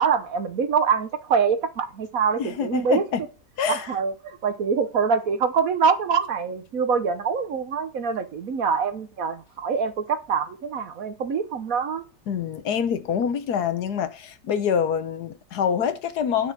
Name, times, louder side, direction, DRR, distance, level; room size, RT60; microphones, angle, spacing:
voice 1, 0.0-3.0 3.7-12.0, right 6 dB, 60° right, 1.3 m, -24 dB
voice 2, 2.4-3.2 3.6-3.9 12.3-16.5, left 7 dB, 70° left, 1.4 m, -26 dB
9.6 x 6.3 x 6.1 m
omnidirectional pair, 1.8 m